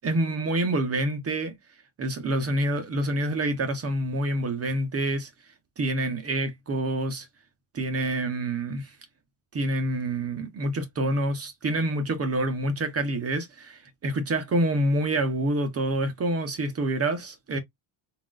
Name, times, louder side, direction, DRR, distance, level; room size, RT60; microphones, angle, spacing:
voice 1, 0.0-1.5 2.0-5.3 5.8-7.3 7.7-8.9 9.5-17.6, right 1 dB, 30° right, 0.8 m, -27 dB
5.7 x 2.5 x 2.3 m
cardioid pair, 155°, 48 cm